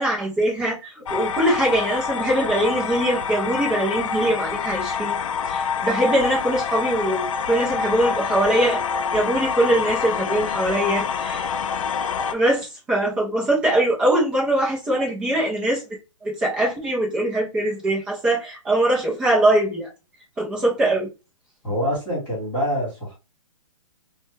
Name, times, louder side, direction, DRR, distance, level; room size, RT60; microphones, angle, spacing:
voice 1, 0.0-5.2 5.5-8.8 9.1-11.5 12.3-15.8 16.2-19.9 20.4-21.1, right 1 dB, 5° right, 0.5 m, -22 dB
sound 1, 1.1-12.3, left 6 dB, 75° left, 0.4 m, -26 dB
voice 2, 21.6-23.1, equal, 10° left, 1.9 m, -26 dB
3.1 x 2.2 x 3.2 m
hypercardioid pair, 170°, 17 cm